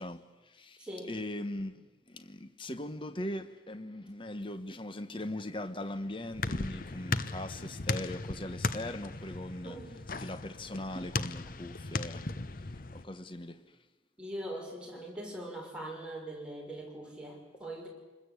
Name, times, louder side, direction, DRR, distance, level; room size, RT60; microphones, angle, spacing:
voice 1, 0.0-0.8 1.0-9.8 10.1-12.6 12.9-13.8, left 1 dB, 25° left, 1.3 m, -40 dB
voice 2, 0.8-1.1 9.6-9.9 14.2-17.9, right 1 dB, 5° right, 5.9 m, -41 dB
sound 1, 5.8-13.1, left 3 dB, 50° left, 0.9 m, -37 dB
27.0 x 21.0 x 8.2 m
head